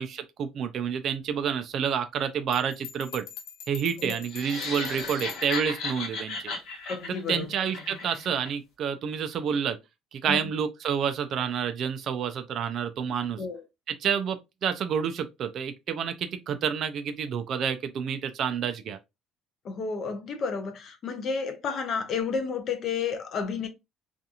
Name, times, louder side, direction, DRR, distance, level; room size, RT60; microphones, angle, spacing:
voice 1, 0.0-3.2 3.7-6.5 7.3-9.8 10.1-13.4 13.9-19.0, right 7 dB, 40° right, 0.3 m, -29 dB
Bell, 2.5-5.7, left 8 dB, 70° left, 0.7 m, -43 dB
sound 1, 4.3-8.5, left 3 dB, 55° left, 1.1 m, -35 dB
voice 2, 6.9-7.5 10.3-10.5 13.4-13.6 19.6-23.7, left 5 dB, 35° left, 0.5 m, -31 dB
2.8 x 2.4 x 2.3 m
cardioid pair, 175°, 0 cm